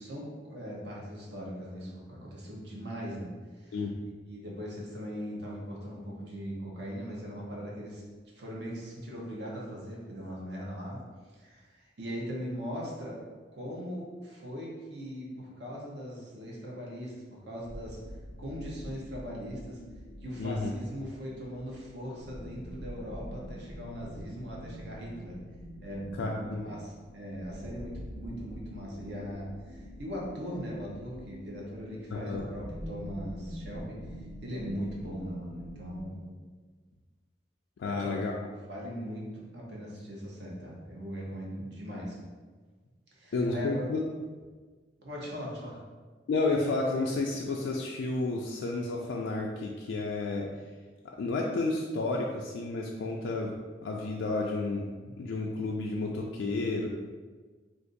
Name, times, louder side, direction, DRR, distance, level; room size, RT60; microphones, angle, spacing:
voice 1, 0.0-3.3 3.6-3.8 4.3-8.0 8.3-11.0 11.3-13.2 13.5-18.0 18.4-19.8 20.2-25.4 25.8-34.0 34.4-36.3 37.8-38.2 38.7-42.2 43.1-43.9 45.0-45.8, equal, 65° right, -3 dB, 0.8 m, -40 dB
sound 1, 17.6-36.1, equal, 25° right, 1.2 m, -45 dB
voice 2, 20.4-20.7 26.2-26.6 32.1-32.4 37.8-38.3 43.3-44.0 46.3-50.5 51.2-53.5 53.8-54.8 55.2-56.9, left 3 dB, 75° left, -1 dB, 0.3 m, -31 dB
2.5 x 2.5 x 3.9 m, 1.4 s
head